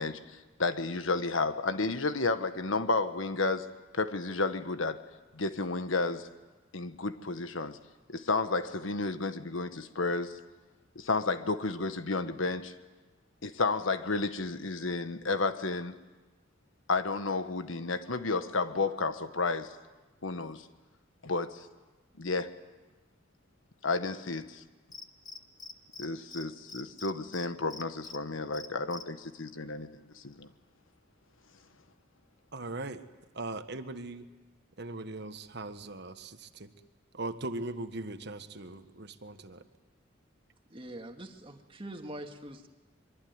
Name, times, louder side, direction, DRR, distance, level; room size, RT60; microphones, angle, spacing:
voice 1, 0.0-5.0 5.3-6.3 6.7-7.8 8.1-10.4 10.9-12.7 13.4-16.0 16.9-19.8 20.2-20.6 21.2-21.7 22.2-22.6 23.8-24.6 26.0-30.5, left 3 dB, 85° left, 10 dB, 1.4 m, -32 dB
Cricket, 24.9-26.1 26.3-26.4 26.7-28.2 28.5-29.0, left 4 dB, 20° left, 1.2 m, -44 dB
voice 2, 32.5-33.0 33.3-34.3 34.8-36.7 37.1-39.6, right 2 dB, 60° right, 9 dB, 1.4 m, -39 dB
voice 3, 40.7-42.7, right 1 dB, 25° right, 5 dB, 2.0 m, -43 dB
24.0 x 23.5 x 9.6 m, 1.2 s
head